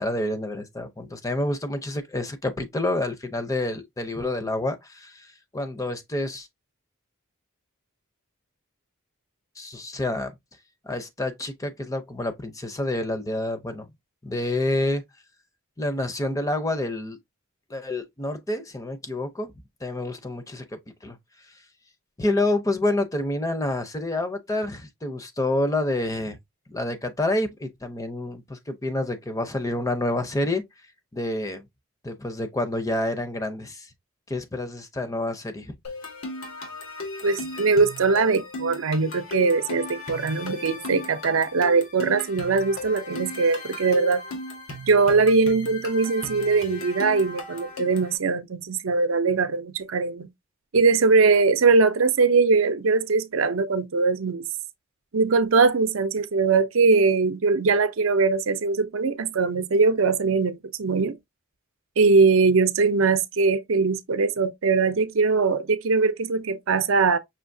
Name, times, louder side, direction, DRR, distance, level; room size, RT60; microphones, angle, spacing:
voice 1, 0.0-6.5 9.6-10.4 10.8-13.9 14.2-15.0 15.8-17.2 17.7-19.5 19.8-21.2 21.5-21.6 22.2-26.4 26.7-30.6 31.1-31.6 32.0-33.9 34.3-35.7, left 1 dB, 15° left, 0.6 m, -28 dB
sound 1, 35.8-48.2, left 2 dB, 85° left, 1.6 m, -37 dB
voice 2, 37.2-44.2 44.9-50.3 50.7-54.5 55.1-61.2 62.0-67.2, right 4 dB, 70° right, 0.6 m, -21 dB
5.6 x 2.8 x 2.6 m
head